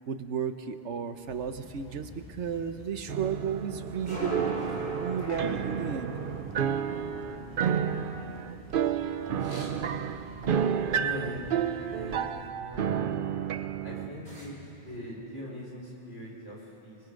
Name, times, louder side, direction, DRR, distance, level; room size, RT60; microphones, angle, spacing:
voice 1, 0.1-4.6 4.9-6.1, right 7 dB, 75° right, 9 dB, 1.2 m, -33 dB
sound 1, 1.2-12.5, left 1 dB, 10° left, 3.9 m, -49 dB
sound 2, 2.9-15.1, equal, 40° right, 3.7 m, -45 dB
sound 3, 3.1-14.1, right 8 dB, 55° right, 0.7 m, -31 dB
voice 2, 9.4-9.7 10.9-11.4 11.8-12.2 12.5-13.1 13.8-17.0, equal, 80° left, -3 dB, 4.8 m, -41 dB
27.0 x 21.5 x 5.2 m, 2.9 s
omnidirectional pair, 1.2 m